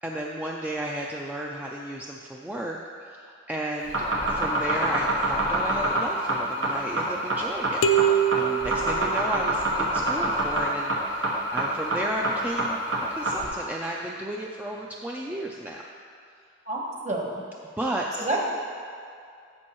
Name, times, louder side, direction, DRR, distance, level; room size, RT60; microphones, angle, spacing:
voice 1, 0.0-12.8 13.1-15.8 17.8-18.3, right 1 dB, 10° right, -2 dB, 0.4 m, -33 dB
sound 1, 3.8-13.5, right 1 dB, 90° right, 1.4 m, -25 dB
sound 2, 7.8-9.7, right 7 dB, 75° left, 0.5 m, -24 dB
voice 2, 16.7-17.4 18.2-18.5, right 1 dB, 40° right, -1 dB, 1.2 m, -28 dB
10.5 x 7.2 x 3.0 m, 2.3 s
head